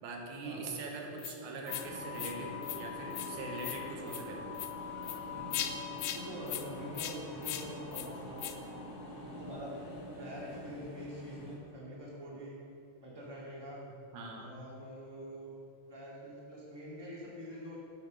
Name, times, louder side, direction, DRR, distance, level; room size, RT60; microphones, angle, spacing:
voice 1, 0.0-4.6 14.1-14.5, right 3 dB, 90° right, 1 dB, 2.7 m, -42 dB
sound 1, 1.2-1.3 1.7-1.9 2.1-2.3 2.6-2.8 3.1-3.3 3.6-3.8 4.1-4.2 4.5-4.7 5.0-5.2 5.5-5.7 6.0-6.2 6.5-6.6 6.9-7.1 7.4-7.6 7.9-8.1 8.4-8.5, left 12 dB, 85° left, 1.3 m, -38 dB
sound 2, 1.7-11.6, left 3 dB, 60° left, 2.4 m, -44 dB
voice 2, 5.3-5.7 6.1-8.6 9.1-9.8 10.1-12.6 13.0-13.8 14.3-15.5 15.9-17.8, equal, 10° right, -6 dB, 2.2 m, -45 dB
10.5 x 6.6 x 6.4 m, 2.5 s
omnidirectional pair, 3.3 m